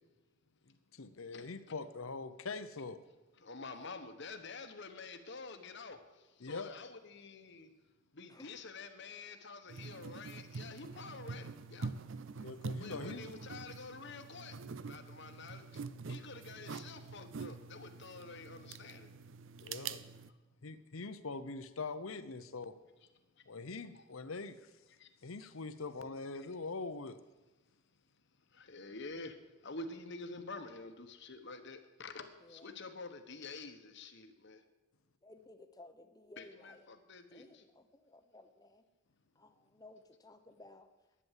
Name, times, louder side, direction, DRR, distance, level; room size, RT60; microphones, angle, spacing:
voice 1, 0.7-3.0 6.4-6.7 12.4-13.2 19.6-20.0 20.6-22.7 23.5-24.7 25.2-27.2, left 3 dB, 75° left, 11 dB, 0.8 m, -43 dB
voice 2, 3.4-6.0 6.4-7.7 8.1-11.9 12.8-14.5 14.8-15.6 16.1-19.1 25.0-25.1 26.3-26.5 28.6-29.3 29.6-34.6 36.4-37.5, left 3 dB, 55° left, 7 dB, 1.2 m, -48 dB
sound 1, 9.7-20.3, right 4 dB, 60° right, 0.5 m, -45 dB
voice 3, 11.3-11.7 32.4-32.8 35.2-36.9 37.3-38.8 39.3-40.9, left 2 dB, 15° left, 7 dB, 0.8 m, -58 dB
11.0 x 9.6 x 7.4 m, 1.1 s
head